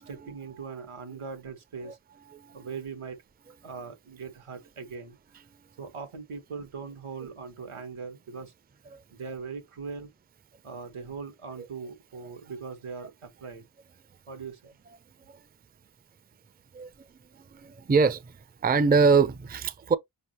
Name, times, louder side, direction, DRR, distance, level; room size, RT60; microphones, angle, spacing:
voice 1, 0.1-2.0 2.5-3.2 3.6-5.2 5.8-8.5 9.1-10.1 10.6-13.7 14.3-14.6, right 5 dB, 85° right, 1.4 m, -40 dB
voice 2, 17.3-18.3 18.6-20.0, right 5 dB, 20° right, 0.4 m, -24 dB
5.2 x 3.5 x 2.9 m
cardioid pair, 50°, 49 cm